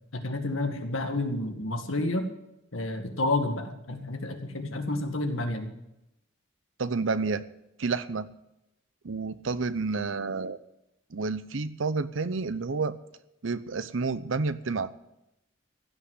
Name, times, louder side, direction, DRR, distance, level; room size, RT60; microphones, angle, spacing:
voice 1, 0.1-2.2 2.7-5.7, left 2 dB, 80° left, 5 dB, 1.9 m, -30 dB
voice 2, 6.8-7.4 7.8-8.3 9.0-10.6 11.1-13.0 13.4-14.9, right 4 dB, 70° right, 15 dB, 0.7 m, -30 dB
15.5 x 6.4 x 9.6 m, 0.87 s
head